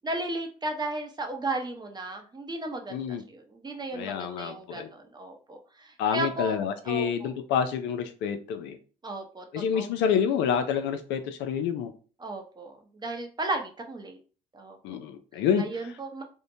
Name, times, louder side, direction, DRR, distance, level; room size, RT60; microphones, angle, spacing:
voice 1, 0.0-6.5 6.9-7.3 9.0-9.4 9.7-9.9 12.2-12.7 13.0-14.2 14.5-14.8 15.6-16.2, right 2 dB, 25° right, 3 dB, 0.7 m, -34 dB
voice 2, 2.9-3.2 3.9-4.9 6.0-8.8 9.5-11.9 14.8-15.6, left 7 dB, 75° left, 8 dB, 0.4 m, -28 dB
2.6 x 2.1 x 2.7 m, 0.38 s
supercardioid pair, 70°, 19 cm